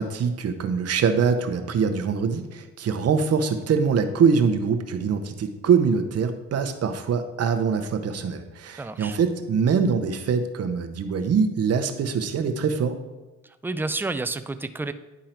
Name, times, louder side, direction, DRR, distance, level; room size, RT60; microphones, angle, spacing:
voice 1, 0.0-13.0, right 6 dB, 55° right, 8 dB, 0.9 m, -23 dB
voice 2, 8.8-9.2 13.4-14.9, right 2 dB, 5° right, 11 dB, 0.3 m, -30 dB
10.5 x 3.7 x 4.4 m, 1.1 s
cardioid pair, 90°, 30 cm